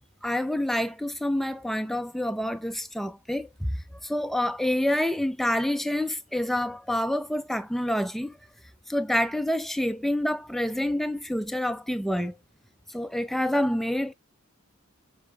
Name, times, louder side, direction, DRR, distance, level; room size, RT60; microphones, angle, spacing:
voice 1, 0.2-3.7 4.0-8.3 8.9-12.3 12.9-14.1, left 1 dB, ahead, 0.4 m, -27 dB
6.6 x 6.2 x 2.3 m
head